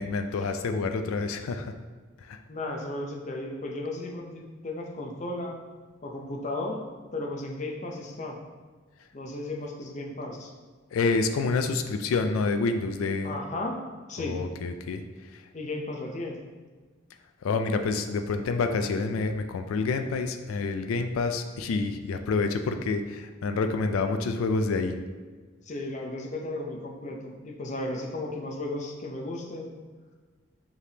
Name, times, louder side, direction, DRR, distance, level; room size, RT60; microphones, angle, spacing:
voice 1, 0.0-1.7 2.3-2.4 10.9-13.3 14.2-15.0 17.4-24.9, left 4 dB, 90° left, 8 dB, 0.3 m, -28 dB
voice 2, 2.5-5.6 6.0-6.8 7.1-8.4 9.1-10.5 13.2-13.7 14.1-14.4 15.5-16.4 25.6-29.7, left 2 dB, 35° left, 0 dB, 0.5 m, -34 dB
4.9 x 3.3 x 2.8 m, 1.4 s
head